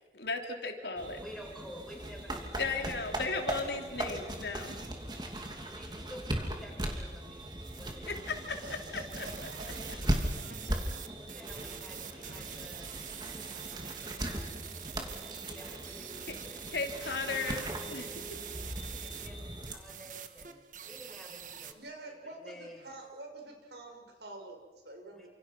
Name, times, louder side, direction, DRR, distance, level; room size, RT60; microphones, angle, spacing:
voice 1, 0.1-1.2 2.6-4.8 8.1-8.6 9.2-9.3 16.3-16.4 16.7-18.1, left 4 dB, 70° left, 4 dB, 3.4 m, -35 dB
sound 1, 1.0-19.7, right 1 dB, 25° right, 2.9 m, -38 dB
voice 2, 1.1-4.1 5.7-8.2 8.5-8.8 11.1-12.9 13.4-17.2 18.0-18.3 18.9-21.8 22.2-22.9 25.1-25.3, equal, ahead, -1 dB, 7.1 m, -52 dB
sound 2, 7.6-8.2 9.1-21.7, right 9 dB, 45° right, 1.5 m, -45 dB
voice 3, 8.6-9.9 10.5-10.6 21.7-25.3, right 2 dB, 70° right, 2 dB, 6.4 m, -47 dB
29.0 x 27.5 x 6.2 m, 1.2 s
head